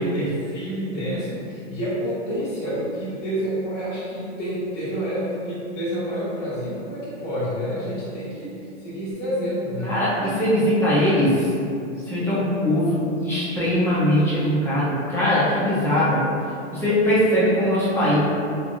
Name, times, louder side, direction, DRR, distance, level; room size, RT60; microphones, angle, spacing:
voice 1, 0.0-10.1, equal, 30° left, -11 dB, 1.4 m, -28 dB
voice 2, 9.8-11.5 12.1-16.2 16.7-18.2, equal, 5° left, -10 dB, 0.5 m, -21 dB
3.2 x 2.5 x 2.3 m, 2.5 s
hypercardioid pair, 130°, 36 cm